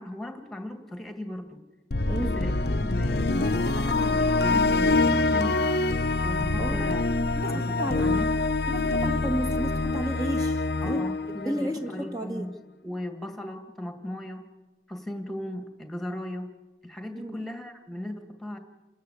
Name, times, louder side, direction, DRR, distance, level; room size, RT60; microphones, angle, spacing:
voice 1, 0.0-1.6 2.3-5.6 6.2-8.3 10.8-12.5 12.8-14.4 14.9-16.5 16.8-18.6, left 1 dB, ahead, 6 dB, 2.0 m, -37 dB
sound 1, 1.9-12.1, left 3 dB, 55° left, 0.7 m, -25 dB
voice 2, 2.1-2.4 6.6-6.8 7.4-8.1 8.7-11.1 11.3-12.5 17.1-17.4, right 1 dB, 20° right, 4 dB, 1.7 m, -32 dB
29.0 x 13.5 x 8.4 m, 1.1 s
head